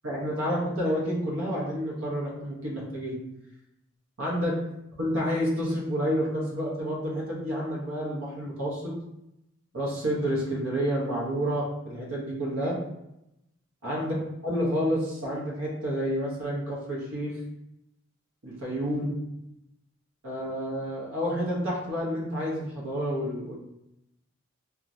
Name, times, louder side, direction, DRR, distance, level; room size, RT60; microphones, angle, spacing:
voice 1, 0.0-3.2 4.2-4.6 5.0-8.9 9.7-12.8 13.8-14.1 14.4-17.3 18.4-19.2 20.2-23.6, equal, 85° right, -4 dB, 0.8 m, -29 dB
3.0 x 2.4 x 2.5 m, 0.86 s
head